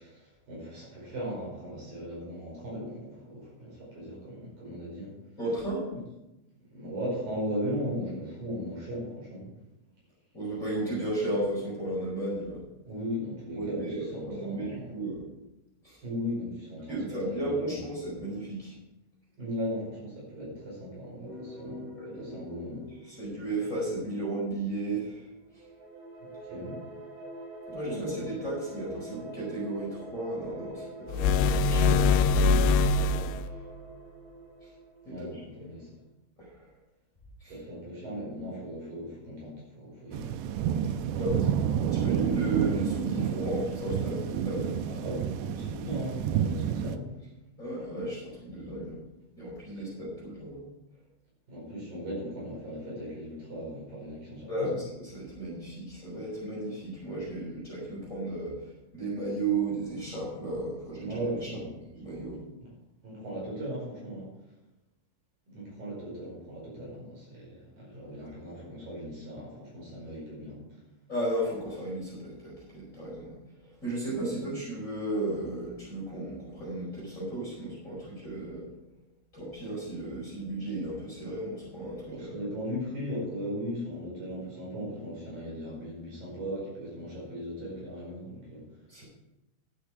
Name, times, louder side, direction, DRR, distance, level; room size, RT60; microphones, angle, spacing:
voice 1, 0.0-5.1 5.8-6.0 6.6-9.5 12.8-15.0 16.0-17.8 19.4-22.9 26.4-26.8 27.9-28.4 35.0-35.9 37.5-41.5 44.9-47.1 49.7-49.9 51.5-54.8 61.0-61.8 62.6-62.7 63.0-64.3 65.5-70.6 74.2-74.6 82.0-88.7 89.0-89.1, equal, 50° right, -5 dB, 6.6 m, -38 dB
voice 2, 5.4-5.8 10.3-12.6 13.5-15.2 15.8-16.0 16.9-18.7 21.9-22.5 23.0-25.3 27.7-33.5 34.6-34.7 35.0-35.7 36.4-36.7 37.4-37.6 41.2-44.8 47.6-49.0 49.4-50.6 54.5-61.5 61.9-62.4 71.1-78.7 79.3-82.5 88.9-89.0, right 2 dB, 15° left, -7 dB, 4.8 m, -34 dB
sound 1, 21.2-24.9 25.4-36.1, right 1 dB, 70° right, 6.8 m, -45 dB
sound 2, 31.1-33.5, left 4 dB, 85° left, 2.8 m, -23 dB
sound 3, 40.1-47.0, right 9 dB, 85° right, 2.8 m, -30 dB
12.5 x 8.5 x 4.9 m, 0.96 s
omnidirectional pair, 5.1 m